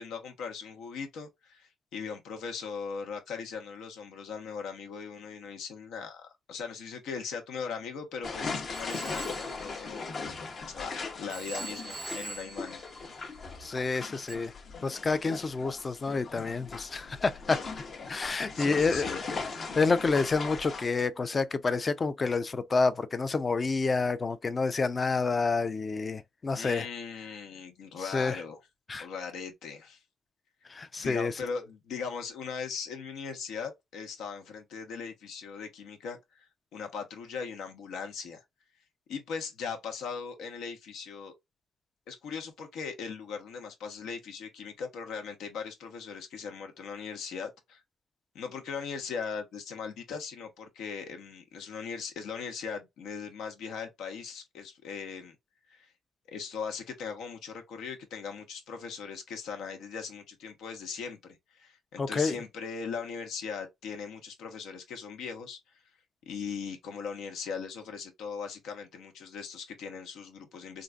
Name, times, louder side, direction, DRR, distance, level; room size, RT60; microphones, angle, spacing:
voice 1, 0.0-10.3 10.7-13.3 18.5-19.5 26.5-28.6 29.0-30.0 31.0-36.5 36.7-38.4 39.1-41.3 42.1-47.8 48.3-55.3 55.7-55.9 56.3-65.6 66.3-70.8, left 6 dB, 80° left, 1.1 m, -39 dB
sound 1, 8.2-20.9, left 4 dB, 50° left, 0.9 m, -39 dB
Telephone, 8.7-10.8 11.3-13.6 14.3-14.4, right 4 dB, 35° right, 0.4 m, -44 dB
voice 2, 13.6-14.5 14.8-17.6 18.1-19.4 19.7-26.9 28.0-28.4 28.9-29.1 30.7-31.3 62.0-62.3, left 4 dB, 30° left, 0.5 m, -28 dB
3.8 x 2.5 x 2.3 m
cardioid pair, 90°, 0 cm